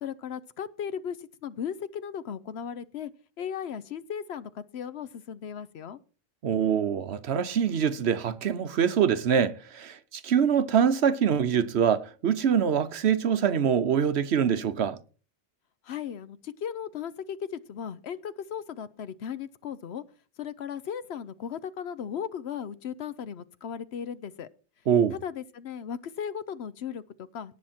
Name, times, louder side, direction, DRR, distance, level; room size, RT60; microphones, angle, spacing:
voice 1, 0.0-3.1 3.4-6.0 15.8-20.0 20.4-24.5 25.1-27.6, left 8 dB, 65° left, 0.9 m, -36 dB
voice 2, 6.4-15.0 24.9-25.1, right 8 dB, 65° right, 1.0 m, -24 dB
18.0 x 6.4 x 4.3 m
omnidirectional pair, 1.2 m